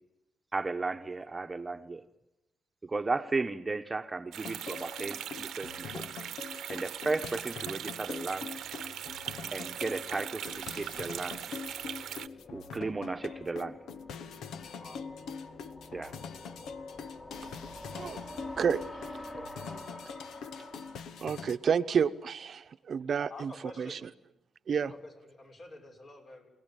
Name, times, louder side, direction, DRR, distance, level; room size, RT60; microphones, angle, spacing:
voice 1, 0.5-2.0 2.8-6.0 6.7-8.5 9.5-11.4 12.5-13.8 15.9-16.2 19.3-19.5, right 3 dB, 20° right, 1.1 m, -35 dB
sound 1, 4.3-12.3, right 10 dB, 85° right, 0.9 m, -40 dB
sound 2, 4.4-21.6, left 6 dB, 85° left, 1.2 m, -44 dB
sound 3, 7.0-22.0, left 1 dB, 30° left, 2.9 m, -49 dB
voice 2, 21.2-23.5 23.8-24.0 24.7-24.9, right 7 dB, 55° right, 0.9 m, -30 dB
voice 3, 23.3-24.0 24.8-26.5, left 2 dB, 50° left, 6.8 m, -49 dB
29.0 x 18.5 x 9.1 m
cardioid pair, 110°, 0 cm